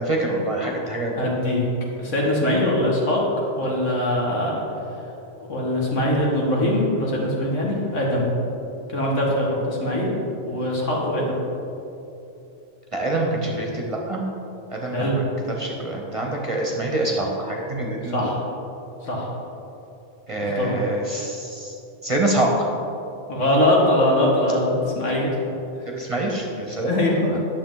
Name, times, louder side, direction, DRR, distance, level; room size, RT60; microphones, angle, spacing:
voice 1, 0.0-1.3 12.9-14.2 14.7-15.2 15.5-18.3 20.3-21.7 22.0-22.5 25.9-27.0 27.3-27.4, right 2 dB, 30° right, -1 dB, 0.8 m, -25 dB
voice 2, 1.2-1.6 2.0-3.2 3.6-4.6 5.5-8.3 8.9-10.1 10.4-11.3 14.9-15.2 18.0-18.4 19.0-19.2 20.4-20.8 23.3-25.3 26.8-27.4, left 1 dB, 80° left, -3 dB, 1.9 m, -22 dB
9.6 x 6.9 x 3.9 m, 2.9 s
omnidirectional pair, 1.2 m